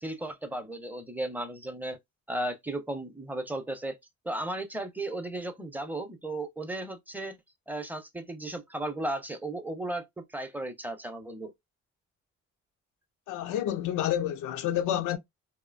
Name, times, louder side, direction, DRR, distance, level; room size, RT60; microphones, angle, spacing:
voice 1, 0.0-2.0 2.3-4.0 4.2-7.4 7.7-10.0 10.3-11.5, right 1 dB, 5° right, 0.6 m, -35 dB
voice 2, 13.3-15.2, left 11 dB, 85° left, 0.5 m, -29 dB
2.8 x 2.1 x 2.4 m
cardioid pair, 90°, 30 cm